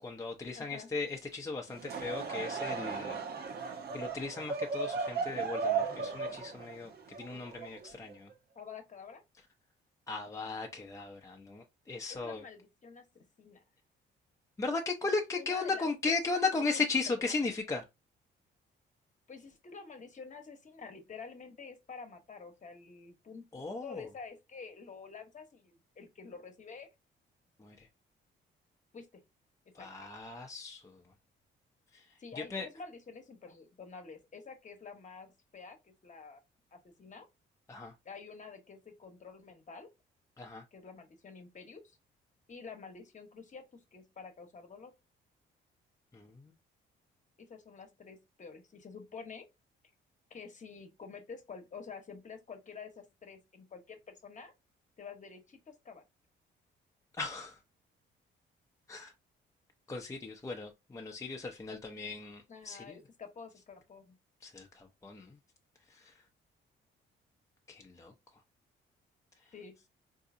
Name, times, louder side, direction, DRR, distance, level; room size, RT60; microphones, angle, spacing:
voice 1, 0.0-3.2 3.9-8.3 10.1-12.4 14.6-17.8 23.5-24.1 27.6-27.9 29.7-31.0 31.9-32.0 32.3-32.7 37.7-37.9 40.4-40.6 46.1-46.5 57.2-57.6 58.9-59.1 59.9-63.0 64.4-65.4 65.9-66.1 67.7-68.1, left 3 dB, 15° left, 0.6 m, -37 dB
voice 2, 0.5-0.9 8.5-9.2 12.1-13.6 15.4-16.4 17.2-17.4 19.3-23.4 23.8-26.9 28.9-29.2 29.8-29.9 32.2-36.4 36.7-37.3 38.0-39.9 40.7-42.0 42.5-44.9 47.4-49.5 50.3-54.5 55.0-56.0 62.5-64.1 69.5-69.8, left 5 dB, 40° left, 1.0 m, -49 dB
Laughter / Crowd, 1.7-8.1, right 5 dB, 50° right, 0.8 m, -36 dB
3.8 x 2.7 x 2.5 m
cardioid pair, 90°, 20 cm